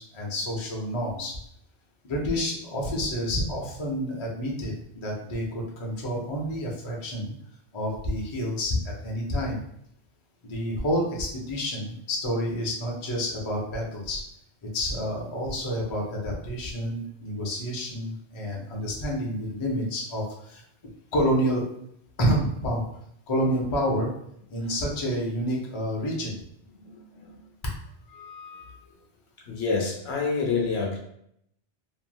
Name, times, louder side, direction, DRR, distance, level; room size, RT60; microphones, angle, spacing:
voice 1, 0.0-1.3 2.0-7.3 7.7-9.6 10.4-14.2 14.7-20.6 21.1-21.7 22.2-22.8 23.3-24.1 24.5-26.4, equal, 35° left, -2 dB, 0.6 m, -29 dB
voice 2, 26.7-27.4 28.1-28.9 29.5-31.0, left 4 dB, 75° left, -1 dB, 0.9 m, -29 dB
3.0 x 2.7 x 2.2 m, 0.72 s
omnidirectional pair, 1.1 m